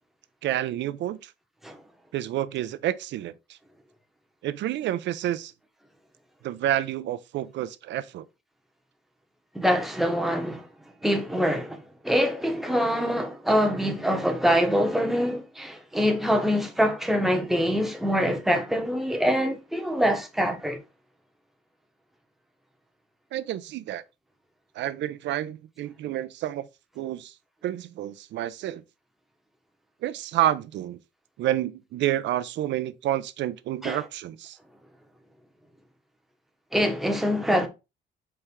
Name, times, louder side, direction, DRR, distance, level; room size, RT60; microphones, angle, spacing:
voice 1, 0.4-1.3 2.1-3.6 4.4-5.5 6.4-8.2 23.3-24.0 24.8-26.7 27.0-27.3 27.6-28.8 30.0-31.0 31.4-34.6, right 12 dB, 75° right, 0.4 m, -29 dB
voice 2, 9.5-10.7 11.0-20.8 33.8-34.0 36.7-37.7, equal, ahead, 0.8 m, -24 dB
4.3 x 3.3 x 3.5 m
cardioid pair, 130°, 19 cm